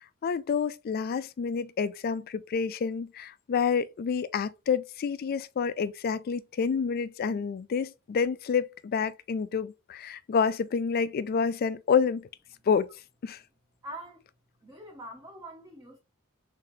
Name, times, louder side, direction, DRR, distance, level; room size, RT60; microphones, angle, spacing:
voice 1, 0.2-12.3 12.7-12.9 13.2-13.4, left 6 dB, 45° left, 0.3 m, -28 dB
voice 2, 13.8-14.2 14.6-16.0, right 1 dB, 15° right, 0.8 m, -44 dB
4.0 x 3.7 x 3.1 m
head